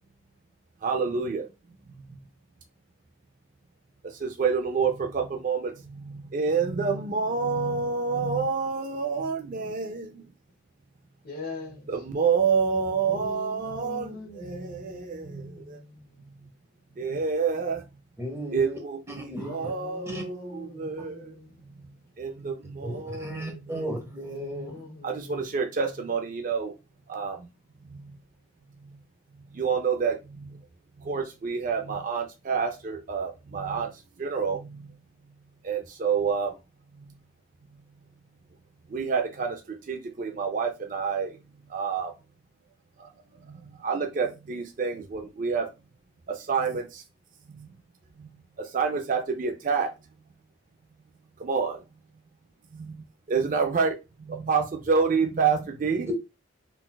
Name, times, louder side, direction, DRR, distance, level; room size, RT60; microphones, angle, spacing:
voice 1, 0.8-1.5 1.9-2.2 4.0-10.3 11.9-15.8 16.3-16.5 17.0-17.9 18.5-21.3 21.6-23.8 25.0-26.7 27.1-27.5 27.8-28.2 28.8-29.0 29.3-30.6 31.0-35.0 35.6-36.6 36.9-37.2 37.7-37.8 38.9-42.1 43.0-43.1 43.4-45.7 46.3-47.0 47.5-47.7 48.2-49.9 51.4-51.8 52.7-56.1, right 5 dB, 40° right, 0.4 m, -29 dB
voice 2, 11.2-11.9 13.1-16.2 19.1-21.6 24.3-25.5, left 3 dB, 45° left, 0.9 m, -42 dB
voice 3, 18.2-18.8 19.1-19.7 20.1-20.2 22.8-24.8 56.1-56.2, right 1 dB, 15° right, 0.7 m, -35 dB
3.8 x 2.4 x 2.2 m
head